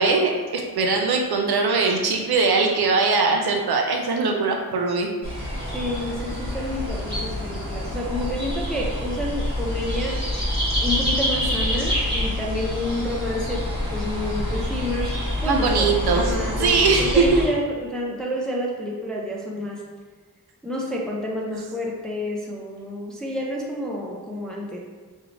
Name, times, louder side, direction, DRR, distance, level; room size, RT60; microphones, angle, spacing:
voice 1, 0.0-5.1 15.4-17.2, right 4 dB, 80° right, 2 dB, 0.5 m, -21 dB
sound 1, 5.2-17.5, left 1 dB, 15° right, 1.1 m, -27 dB
voice 2, 5.7-10.2 10.8-13.6 13.9-19.8 20.6-24.8, equal, ahead, -2 dB, 0.3 m, -29 dB
2.6 x 2.0 x 2.9 m, 1.5 s
wide cardioid pair, 110°, 37 cm